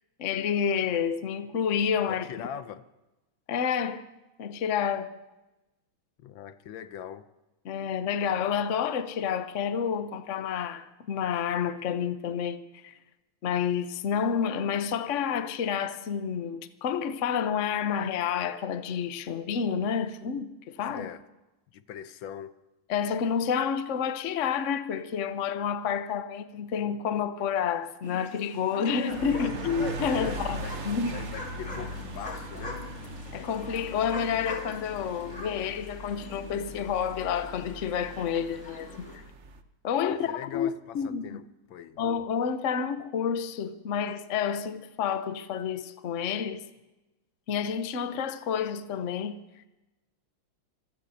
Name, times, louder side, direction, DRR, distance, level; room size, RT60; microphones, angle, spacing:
voice 1, 0.2-2.3 3.5-4.0 4.4-5.2 7.6-12.9 13.4-21.1 22.9-31.2 33.3-39.2 39.8-40.7 40.9-41.4 42.0-46.6 47.5-49.4, left 7 dB, 55° left, 0.8 m, -29 dB
voice 2, 2.1-2.8 6.2-7.3 20.9-21.2 21.7-22.5 30.1-30.8 31.1-32.8 40.1-42.0, left 9 dB, 70° left, 1.4 m, -41 dB
sound 1, 28.0-39.2, left 2 dB, 35° left, 3.8 m, -42 dB
sound 2, 29.1-39.6, right 2 dB, 50° right, 0.9 m, -40 dB
26.5 x 16.5 x 2.8 m
omnidirectional pair, 2.3 m